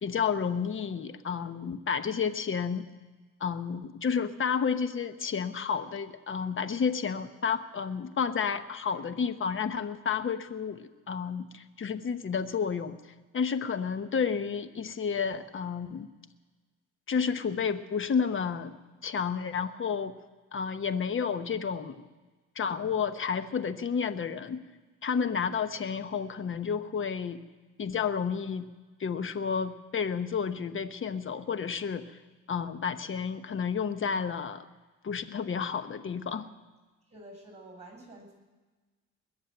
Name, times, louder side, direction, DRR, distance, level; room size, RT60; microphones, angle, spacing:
voice 1, 0.0-2.9 3.4-13.0 13.3-16.1 17.1-20.1 20.5-22.0 22.5-24.6 25.0-27.4 27.8-28.7 29.0-32.1 32.5-34.7 35.0-36.5, left 6 dB, 40° left, 11 dB, 1.1 m, -31 dB
voice 2, 37.1-38.3, right 1 dB, 20° right, 1 dB, 7.4 m, -49 dB
21.5 x 7.3 x 9.1 m, 1.3 s
cardioid pair, 90°, 30 cm